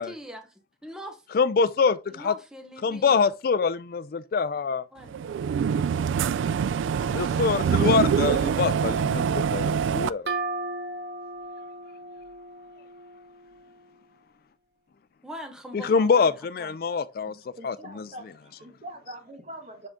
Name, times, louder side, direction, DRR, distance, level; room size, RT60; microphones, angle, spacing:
voice 1, 0.0-1.2 2.1-3.3 4.9-5.2 7.0-8.7 15.2-16.3 16.6-16.7, equal, 5° right, 0.9 m, -42 dB
voice 2, 1.3-2.3 2.8-4.9 7.1-10.3 15.7-17.4 17.6-18.1, left 5 dB, 50° left, 0.3 m, -25 dB
sound 1, 5.1-10.1, right 7 dB, 90° right, 0.3 m, -25 dB
sound 2, 10.3-13.8, right 3 dB, 60° right, 1.0 m, -36 dB
voice 3, 17.3-19.9, right 1 dB, 35° right, 1.6 m, -43 dB
7.7 x 3.7 x 3.6 m
head